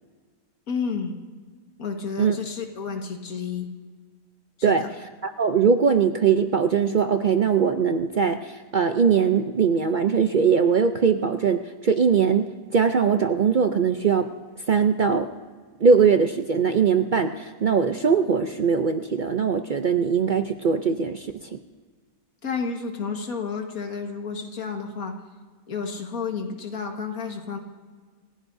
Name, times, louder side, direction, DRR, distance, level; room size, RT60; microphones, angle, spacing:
voice 1, 0.7-1.1 1.8-3.7 4.7-4.9 22.4-25.2 25.7-27.6, left 5 dB, 85° left, 3 dB, 2.0 m, -31 dB
voice 2, 5.2-14.3 14.7-15.3 15.8-21.6, right 6 dB, 55° right, 7 dB, 0.5 m, -21 dB
28.0 x 16.0 x 2.7 m, 1.5 s
omnidirectional pair, 1.5 m